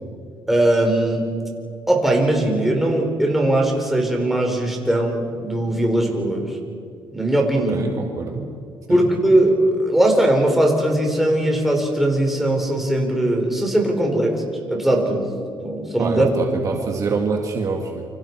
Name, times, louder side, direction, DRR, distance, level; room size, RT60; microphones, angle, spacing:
voice 1, 0.5-1.3 1.9-6.6 7.1-7.8 8.9-15.3 15.6-16.3, right 1 dB, 5° right, 0 dB, 4.2 m, -19 dB
voice 2, 7.7-8.5 8.9-9.1 16.0-18.0, right 4 dB, 40° right, 2 dB, 2.0 m, -25 dB
28.5 x 26.0 x 4.7 m, 2.4 s
cardioid pair, 135°, 8 cm